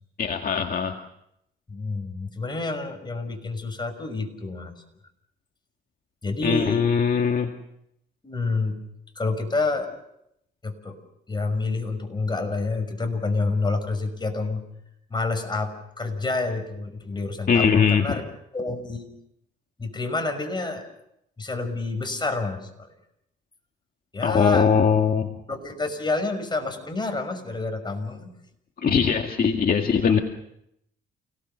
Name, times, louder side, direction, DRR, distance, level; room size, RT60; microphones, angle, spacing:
voice 1, 0.2-0.9 6.4-7.5 17.5-18.1 24.2-25.3 28.8-30.2, left 6 dB, 50° left, 3 dB, 2.0 m, -21 dB
voice 2, 1.7-4.7 6.2-6.8 8.2-8.7 9.2-9.9 10.6-11.0 11.3-14.6 15.1-18.2 18.5-19.0 19.8-20.9 21.4-22.9 24.1-24.7 25.5-28.3 30.1-30.2, left 3 dB, 20° left, 5 dB, 5.9 m, -28 dB
29.5 x 18.5 x 6.9 m, 0.78 s
cardioid pair, 90°, 20 cm